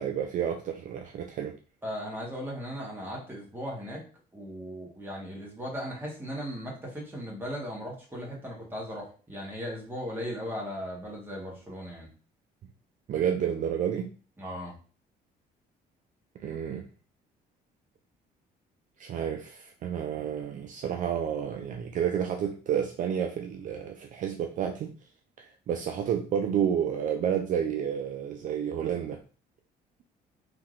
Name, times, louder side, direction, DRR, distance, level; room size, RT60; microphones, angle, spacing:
voice 1, 0.0-1.5 13.1-14.1 16.4-16.9 19.0-24.9 25.4-29.2, right 8 dB, 50° right, 3 dB, 0.4 m, -30 dB
voice 2, 1.8-4.0 4.3-12.1 14.4-14.7, equal, 15° right, -3 dB, 1.3 m, -37 dB
3.5 x 2.8 x 2.4 m, 0.38 s
cardioid pair, 110°, 17 cm